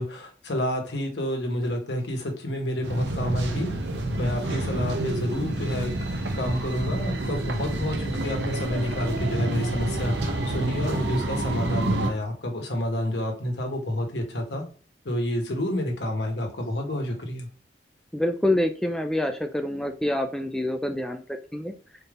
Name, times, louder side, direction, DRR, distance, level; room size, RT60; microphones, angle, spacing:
voice 1, 0.0-3.7 4.2-14.6 15.0-17.5, left 1 dB, 80° left, 2 dB, 1.3 m, -29 dB
sound 1, 2.8-12.1, right 2 dB, 80° right, 0.8 m, -28 dB
voice 2, 18.1-21.3 21.5-21.7, left 1 dB, 5° left, 5 dB, 0.4 m, -26 dB
4.3 x 3.4 x 2.5 m, 0.39 s
head